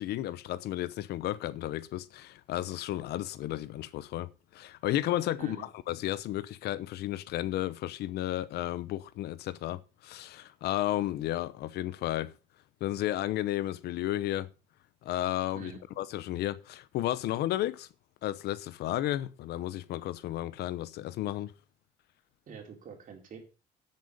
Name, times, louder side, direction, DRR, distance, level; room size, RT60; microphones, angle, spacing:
voice 1, 0.0-12.3 12.8-14.5 15.0-17.9 18.2-21.5, left 14 dB, 75° left, 0.8 m, -33 dB
voice 2, 22.5-23.4, right 6 dB, 50° right, 4.1 m, -45 dB
9.7 x 8.7 x 5.3 m
cardioid pair, 110°, 17 cm